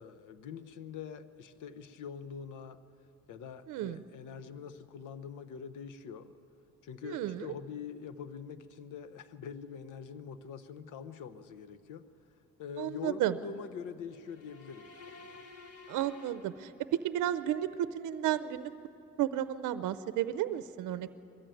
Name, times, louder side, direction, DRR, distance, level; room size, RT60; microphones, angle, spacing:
voice 1, 0.0-2.8 3.3-6.3 6.8-12.0 12.6-15.4, left 6 dB, 85° left, 12 dB, 0.9 m, -44 dB
voice 2, 3.7-4.0 7.0-7.5 12.8-13.4 15.9-18.7 19.2-21.1, right 12 dB, 90° right, 13 dB, 0.6 m, -32 dB
sound 1, 14.1-17.2, left 4 dB, 50° left, 1.7 m, -53 dB
22.0 x 14.0 x 9.0 m, 2.9 s
cardioid pair, 90°, 30 cm